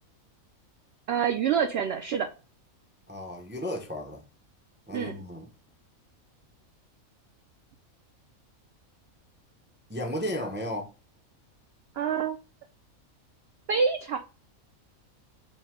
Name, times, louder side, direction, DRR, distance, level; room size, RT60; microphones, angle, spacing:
voice 1, 1.1-2.3 4.9-5.2 12.0-12.4 13.7-14.2, right 7 dB, 65° right, 0.6 m, -26 dB
voice 2, 3.1-4.2 4.9-5.5 9.9-10.9, equal, 15° right, 0.4 m, -34 dB
5.1 x 2.1 x 3.5 m
omnidirectional pair, 1.5 m